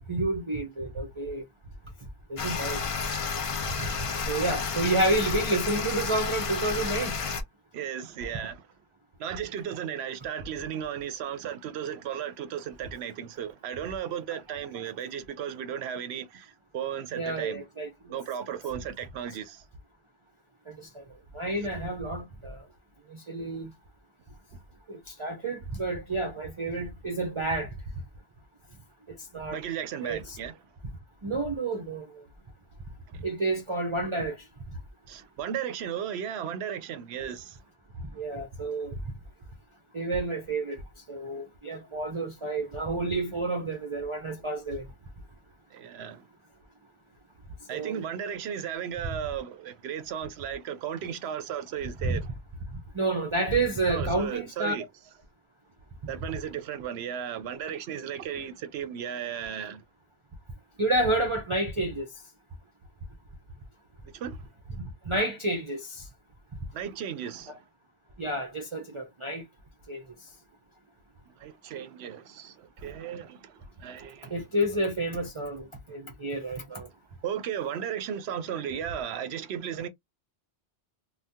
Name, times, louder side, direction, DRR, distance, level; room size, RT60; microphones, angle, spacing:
voice 1, 0.1-1.4 2.3-2.8 4.3-7.2 17.1-18.1 18.5-18.6 20.7-21.0 21.3-22.7 23.1-23.7 24.9-27.7 29.3-29.6 30.0-30.4 31.2-32.2 33.2-34.4 38.1-39.0 39.9-40.8 41.1-44.9 47.7-48.1 52.0-52.1 52.7-54.7 60.8-62.1 64.8-66.1 68.2-69.4 69.9-70.0 74.3-76.9, right 2 dB, 35° right, 0.5 m, -30 dB
sound 1, 2.4-7.4, left 5 dB, 50° left, 0.4 m, -31 dB
voice 2, 7.7-8.7 9.2-17.6 18.1-19.6 29.5-30.5 33.1-33.3 35.1-37.6 45.7-46.3 47.7-52.3 53.9-54.8 56.1-59.8 64.0-64.4 66.7-67.6 71.4-74.3 77.2-79.9, right 9 dB, 70° right, 0.8 m, -35 dB
2.7 x 2.2 x 3.5 m
omnidirectional pair, 1.2 m